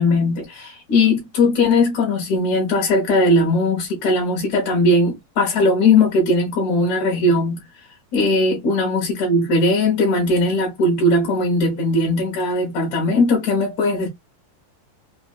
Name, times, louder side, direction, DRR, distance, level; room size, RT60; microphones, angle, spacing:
voice 1, 0.0-7.6 8.1-14.1, left 2 dB, 65° left, 2.3 m, -19 dB
5.3 x 2.5 x 2.3 m
omnidirectional pair, 3.8 m